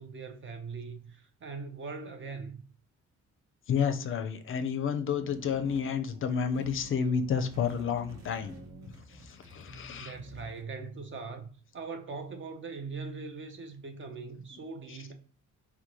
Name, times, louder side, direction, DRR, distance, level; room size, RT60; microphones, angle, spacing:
voice 1, 0.0-2.6 10.0-15.1, right 4 dB, 40° right, 0.5 m, -41 dB
voice 2, 3.7-8.5 9.1-10.2 14.9-15.0, left 7 dB, 45° left, 0.5 m, -30 dB
sound 1, 5.1-9.0, right 2 dB, 85° right, 1.2 m, -51 dB
sound 2, 5.6-5.9 6.3-6.9 7.3-10.6, left 1 dB, 65° right, 1.1 m, -52 dB
3.7 x 2.2 x 2.9 m
cardioid pair, 90°, 30 cm